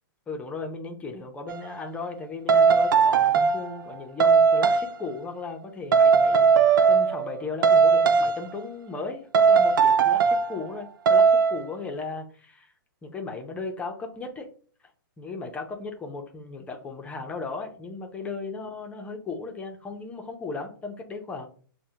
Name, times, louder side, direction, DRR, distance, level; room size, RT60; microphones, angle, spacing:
voice 1, 0.3-6.5 6.9-12.7 13.0-14.5 15.2-21.5, left 4 dB, 10° left, 3 dB, 0.5 m, -36 dB
sound 1, 1.5-1.7 2.5-3.7 4.2-4.9 5.9-7.3 7.6-8.5 9.3-10.5 11.1-11.6, right 5 dB, 65° right, 0.4 m, -19 dB
5.8 x 2.1 x 2.7 m, 0.43 s
hypercardioid pair, 140°, 12 cm